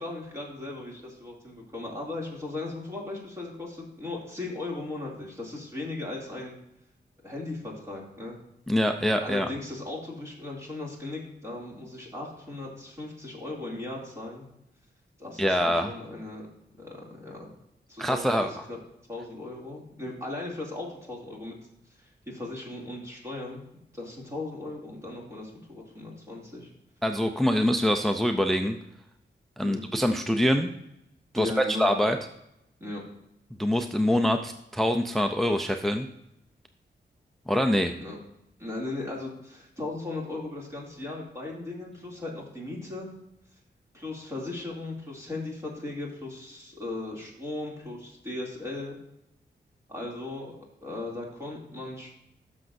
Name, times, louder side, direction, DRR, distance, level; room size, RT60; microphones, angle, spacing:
voice 1, 0.0-6.6 7.2-8.4 9.2-14.5 15.2-16.4 16.7-17.5 17.9-18.4 18.7-18.8 19.1-21.6 22.0-23.6 23.9-26.7 29.6-29.8 31.3-32.0 32.8-33.0 38.0-38.2 38.6-43.1 43.9-49.0 49.9-50.6 50.8-52.1, left 2 dB, 15° right, -3 dB, 2.5 m, -37 dB
voice 2, 8.7-9.5 15.4-15.9 18.0-18.5 27.0-28.8 29.6-30.7 31.3-32.2 33.6-36.1 37.5-37.9, equal, ahead, 6 dB, 0.4 m, -24 dB
13.5 x 6.2 x 2.6 m, 0.83 s
wide cardioid pair, 150°, 18 cm